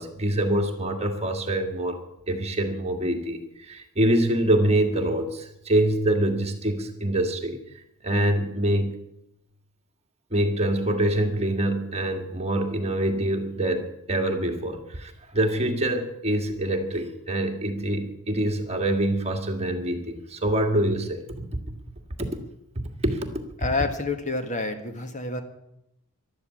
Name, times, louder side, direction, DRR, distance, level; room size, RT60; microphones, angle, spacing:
voice 1, 0.0-2.0 2.3-7.6 8.0-8.9 10.3-21.2 22.2-22.3 23.0-23.4, right 1 dB, 30° right, 4 dB, 1.9 m, -25 dB
voice 2, 23.6-25.4, left 3 dB, 35° left, 7 dB, 1.6 m, -28 dB
14.0 x 12.0 x 8.5 m, 0.80 s
head